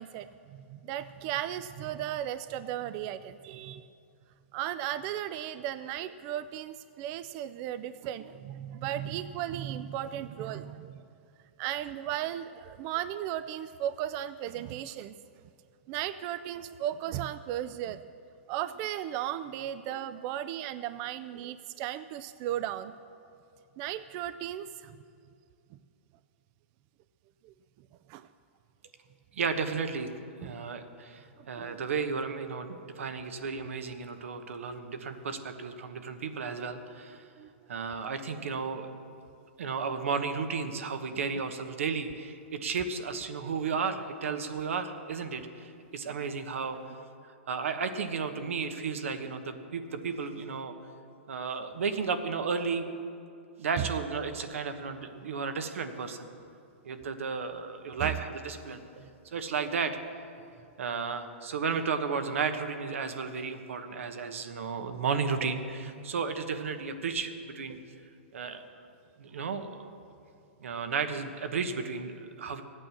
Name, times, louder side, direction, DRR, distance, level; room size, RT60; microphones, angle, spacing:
voice 1, 0.0-3.9 4.5-11.0 11.6-15.1 15.9-18.0 18.5-22.9 23.8-25.0 27.4-27.5 28.1-28.3 30.4-30.5 31.4-31.8 37.4-37.5 46.1-46.3 53.8-53.9 58.0-58.1, right 12 dB, 35° right, 13 dB, 0.3 m, -36 dB
voice 2, 29.4-30.1 30.4-37.2 37.7-38.9 39.6-46.8 47.5-50.7 51.3-52.9 53.6-56.3 56.8-58.8 59.3-60.0 60.8-67.8 68.3-68.6 69.2-69.9 70.6-72.6, right 5 dB, 85° right, 8 dB, 1.2 m, -33 dB
14.0 x 8.9 x 7.1 m, 2.4 s
hypercardioid pair, 155°, 7 cm